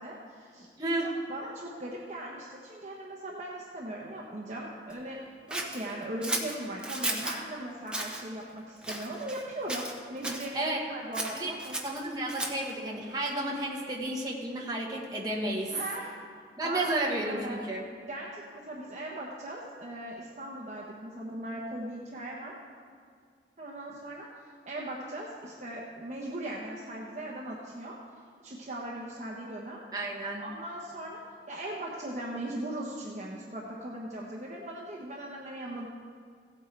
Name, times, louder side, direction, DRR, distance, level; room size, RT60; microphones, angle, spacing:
voice 1, 0.0-0.7 1.0-11.8 15.7-16.1 16.6-17.6 18.1-22.6 23.6-24.3 24.7-28.0 28.4-29.8 30.4-31.2 31.5-35.9, right 1 dB, 40° right, -3 dB, 1.0 m, -39 dB
voice 2, 0.8-1.1 10.5-10.8 11.3-11.5 11.8-15.8 16.6-17.8 29.9-30.4, right 1 dB, 20° right, -2 dB, 1.4 m, -32 dB
Scissors, 5.5-7.4 7.9-8.2 8.8-9.4 9.7-10.5 11.1-12.7, right 1 dB, 5° right, 0.7 m, -34 dB
16.0 x 8.6 x 3.3 m, 2.1 s
head